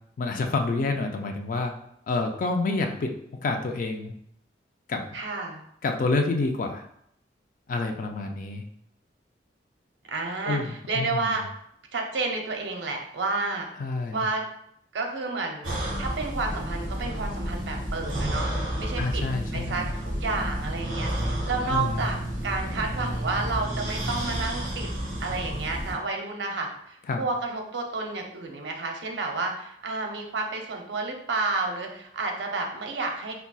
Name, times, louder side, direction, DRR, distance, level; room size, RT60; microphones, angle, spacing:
voice 1, 0.2-1.7 2.1-4.1 4.9-5.2 5.8-6.8 7.7-8.6 10.5-11.4 13.8-14.3 19.0-19.8 21.7-22.1 27.1-27.2, left 3 dB, 50° left, 4 dB, 0.4 m, -28 dB
voice 2, 5.1-5.6 10.1-11.4 11.9-13.7 14.1-14.4 14.9-18.5 18.8-19.2 19.5-22.2 22.4-24.9 25.2-33.3, right 3 dB, 80° right, 2 dB, 0.6 m, -30 dB
sound 1, 15.6-25.9, right 1 dB, 50° right, 1.4 m, -31 dB
3.9 x 2.2 x 2.3 m, 0.71 s
head